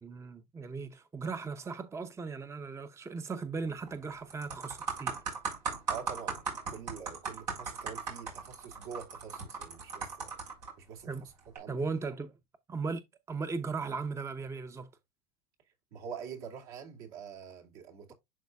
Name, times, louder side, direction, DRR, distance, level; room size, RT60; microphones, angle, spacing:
voice 1, 0.0-5.1 11.1-11.3 11.7-12.3 12.7-14.9, right 4 dB, 15° right, 0.7 m, -37 dB
sound 1, 3.7-3.9 4.3-10.7 11.4-11.6, right 5 dB, 85° right, 4.0 m, -37 dB
voice 2, 5.9-6.4 6.7-10.4 10.8-11.8 15.9-18.1, right 7 dB, 65° right, 2.4 m, -45 dB
11.0 x 3.9 x 2.4 m
hypercardioid pair, 95°, 20 cm